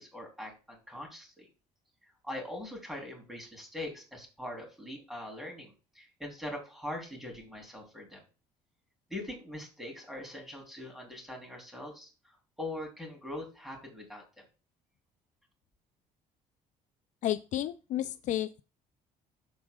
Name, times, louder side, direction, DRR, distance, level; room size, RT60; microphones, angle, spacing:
voice 1, 0.0-1.5 2.2-8.2 9.1-12.1 12.6-14.4, left 1 dB, ahead, 1 dB, 3.5 m, -42 dB
voice 2, 17.2-18.6, left 12 dB, 55° left, 13 dB, 0.4 m, -32 dB
13.5 x 4.7 x 2.4 m, 0.32 s
cardioid pair, 105°, 15 cm